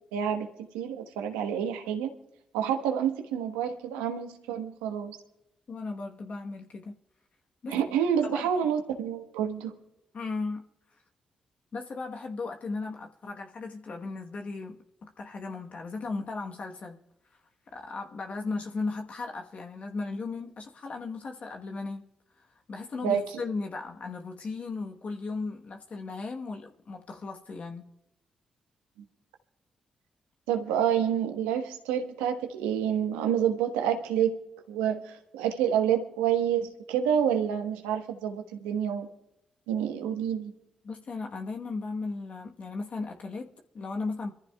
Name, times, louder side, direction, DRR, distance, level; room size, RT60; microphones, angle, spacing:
voice 1, 0.1-0.5 0.7-2.1 2.5-5.2 7.7-9.7 23.0-23.2 30.5-34.4 34.7-39.1 39.7-40.5, right 9 dB, 90° right, 1.2 m, -28 dB
voice 2, 5.7-7.0 7.6-7.8 8.2-8.5 10.1-10.6 11.7-17.0 17.7-22.1 22.4-27.9 40.8-44.3, left 3 dB, 55° left, 1.2 m, -36 dB
26.0 x 14.5 x 2.3 m
hypercardioid pair, 40°, 3 cm